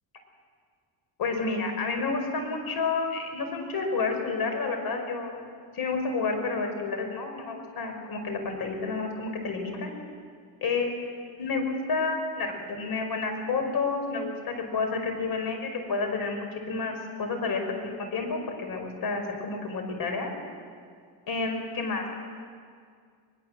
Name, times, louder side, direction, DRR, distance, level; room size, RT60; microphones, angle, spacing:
voice 1, 1.2-5.4 5.7-9.9 10.6-16.9 17.2-20.3 21.3-22.1, left 4 dB, 55° left, 4 dB, 5.6 m, -30 dB
22.5 x 22.0 x 7.7 m, 2.1 s
cardioid pair, 105°, 44 cm